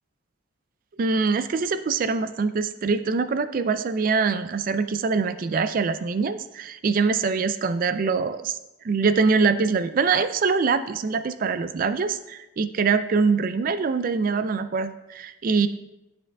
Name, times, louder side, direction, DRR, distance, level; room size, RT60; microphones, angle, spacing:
voice 1, 1.0-8.5 8.8-15.7, right 4 dB, 45° right, 12 dB, 0.4 m, -24 dB
9.9 x 6.2 x 2.3 m, 0.95 s
head